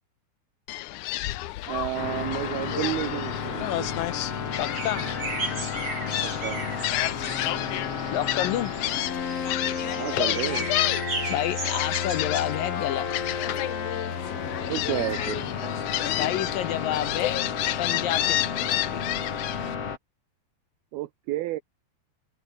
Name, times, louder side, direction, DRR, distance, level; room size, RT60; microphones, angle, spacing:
Gull seagull, 0.7-19.7, left 15 dB, 90° left, 1.7 m, -31 dB
voice 1, 1.7-3.9 6.2-6.6 9.8-10.7 14.7-15.7 20.9-21.6, right 17 dB, 75° right, 2.7 m, -31 dB
sound 1, 1.9-20.0, left 6 dB, 40° left, 3.1 m, -32 dB
sound 2, 3.4-15.3, right 3 dB, 30° right, 6.5 m, -37 dB
voice 2, 4.6-5.1 8.1-8.7 11.3-13.1 16.1-17.4 17.8-19.0, left 12 dB, 70° left, 2.3 m, -29 dB
omnidirectional pair, 4.7 m